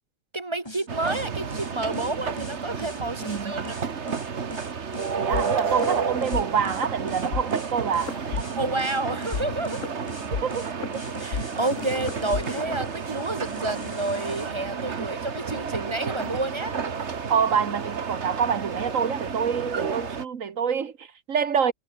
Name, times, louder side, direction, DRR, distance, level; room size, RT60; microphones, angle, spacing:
voice 1, 0.3-3.8 8.6-9.9 11.2-16.8, right 2 dB, 25° right, 1.0 m, -30 dB
sound 1, 0.7-14.5, left 1 dB, 20° left, 4.9 m, -42 dB
sound 2, 0.9-20.2, right 6 dB, 60° right, 1.8 m, -31 dB
voice 2, 3.2-3.6 5.2-8.4 10.3-10.6 10.9-11.1 15.0-15.1 17.3-21.7, right 7 dB, 85° right, 1.8 m, -26 dB
sound 3, 5.3-6.4 6.7-6.9 7.3-7.4 7.9-9.0 9.3-13.3, left 6 dB, 80° left, 1.8 m, -33 dB
omnidirectional pair, 1.3 m